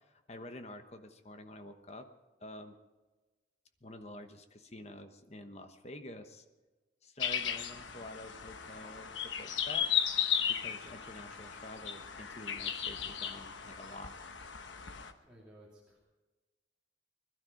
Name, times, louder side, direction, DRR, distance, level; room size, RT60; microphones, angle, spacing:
voice 1, 0.1-2.1 2.4-2.7 3.8-6.4 7.0-9.9 10.5-14.2, left 1 dB, 35° left, 7 dB, 1.1 m, -48 dB
sound 1, 7.2-15.1, left 9 dB, 85° left, 1.1 m, -36 dB
voice 2, 15.2-16.0, right 1 dB, 5° right, -7 dB, 2.6 m, -57 dB
21.0 x 12.5 x 5.2 m, 1.2 s
head